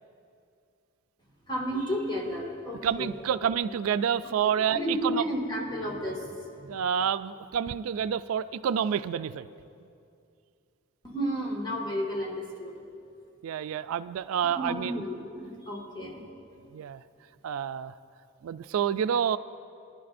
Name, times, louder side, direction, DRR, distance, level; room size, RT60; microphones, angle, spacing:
voice 1, 1.5-3.2 4.7-6.9 11.0-12.8 14.6-16.2, equal, 20° left, -2 dB, 2.0 m, -32 dB
voice 2, 2.8-5.2 6.7-9.5 13.4-15.0 16.7-17.0 17.4-17.9 18.4-19.4, right 8 dB, 85° right, 14 dB, 0.3 m, -28 dB
22.5 x 11.0 x 2.6 m, 2.5 s
head